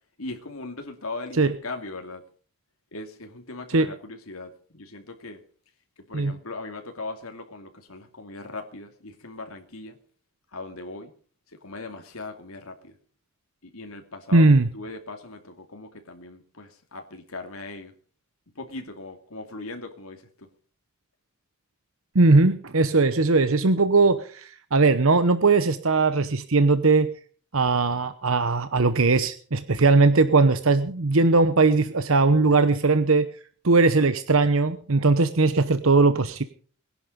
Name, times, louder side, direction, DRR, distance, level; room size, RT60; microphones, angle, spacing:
voice 1, 0.2-2.2 2.9-5.4 6.0-10.0 10.5-11.1 11.5-13.0 13.6-14.5 14.7-18.0 18.5-20.5, left 2 dB, 75° left, 5 dB, 2.6 m, -39 dB
voice 2, 14.3-14.7 22.1-27.1 27.5-33.3 33.6-36.4, right 3 dB, 70° right, 12 dB, 1.0 m, -19 dB
21.0 x 11.0 x 5.3 m, 0.44 s
head